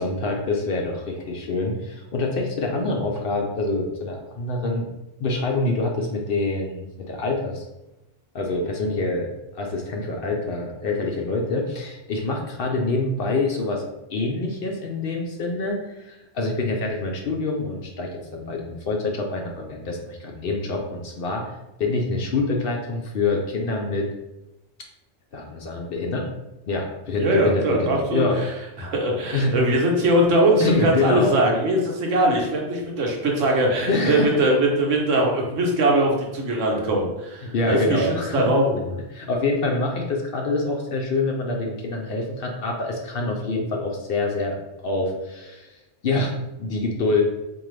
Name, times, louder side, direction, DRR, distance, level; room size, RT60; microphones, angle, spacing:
voice 1, 0.0-4.9 5.2-7.7 8.3-9.3 9.5-13.8 14.1-21.5 21.8-24.1 25.3-26.3 26.7-28.4 29.3-29.6 30.6-31.4 33.9-34.3 37.4-38.4 39.1-44.6 44.8-45.7 46.0-47.2, left 3 dB, 60° left, 1 dB, 0.7 m, -26 dB
voice 2, 27.2-28.2 28.8-38.1 38.3-38.8, right 1 dB, 85° right, 0 dB, 1.2 m, -21 dB
3.8 x 2.7 x 3.1 m, 0.95 s
omnidirectional pair, 1.3 m